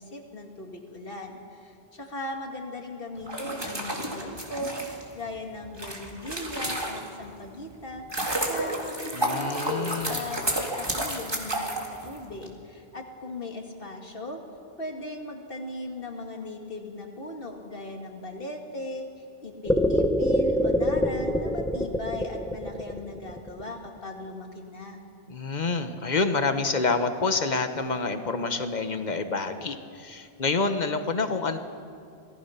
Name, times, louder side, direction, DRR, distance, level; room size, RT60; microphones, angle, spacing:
voice 1, 0.0-14.4 14.8-25.0, left 1 dB, 60° left, 2 dB, 2.4 m, -38 dB
sound 1, 3.2-7.3 7.8-12.5, right 1 dB, 25° right, 2.4 m, -31 dB
voice 2, 9.1-10.2 25.3-31.6, left 4 dB, 45° left, 8 dB, 1.3 m, -27 dB
sound 2, 19.6-23.9, equal, 5° left, 1.2 m, -24 dB
27.0 x 18.5 x 5.8 m, 2.5 s
omnidirectional pair, 1.1 m